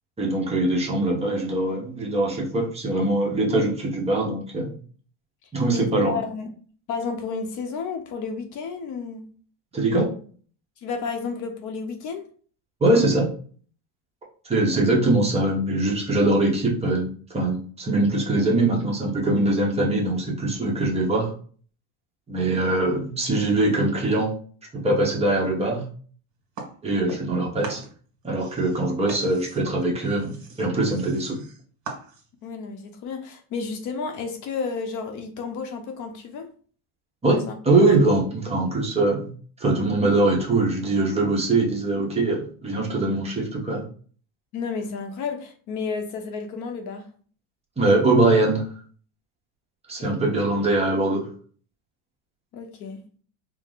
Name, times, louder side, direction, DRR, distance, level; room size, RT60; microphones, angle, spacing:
voice 1, 0.2-4.7 5.5-6.2 9.7-10.1 12.8-13.3 14.4-21.3 22.3-24.3 24.7-25.8 26.8-27.8 28.2-31.4 37.2-37.4 37.6-39.3 39.6-43.8 47.8-48.6 49.9-51.3, right 2 dB, 15° right, -2 dB, 0.9 m, -22 dB
voice 2, 5.7-6.6 6.9-9.3 10.8-12.3 32.4-36.5 37.8-38.0 44.5-47.1 50.0-50.3 52.5-53.0, left 5 dB, 50° left, 5 dB, 0.8 m, -32 dB
sound 1, 26.5-27.4 27.6-32.5, right 4 dB, 50° right, 1.7 m, -41 dB
4.6 x 2.1 x 3.8 m, 0.43 s
cardioid pair, 145°, 38 cm